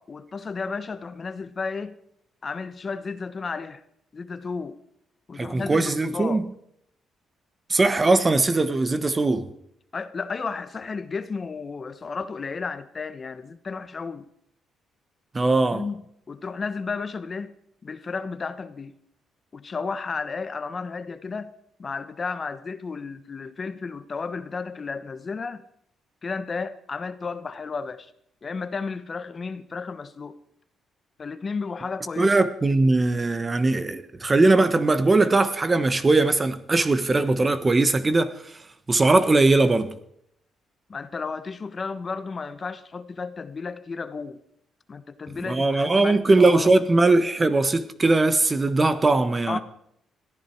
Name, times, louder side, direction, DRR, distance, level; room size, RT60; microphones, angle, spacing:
voice 1, 0.0-2.0 2.4-3.8 4.1-4.8 5.3-6.4 9.9-14.3 15.7-17.5 17.8-19.0 19.5-21.5 21.8-25.6 26.2-28.1 28.4-30.4 31.2-32.3 40.9-44.4 44.9-46.7 49.5-49.6, left 4 dB, 35° left, 1.1 m, -33 dB
voice 2, 5.4-6.4 7.7-9.5 15.3-15.8 32.2-38.3 38.9-39.9 45.4-49.6, right 2 dB, 25° right, 1.3 m, -20 dB
21.0 x 14.5 x 4.6 m
cardioid pair, 90°, 0 cm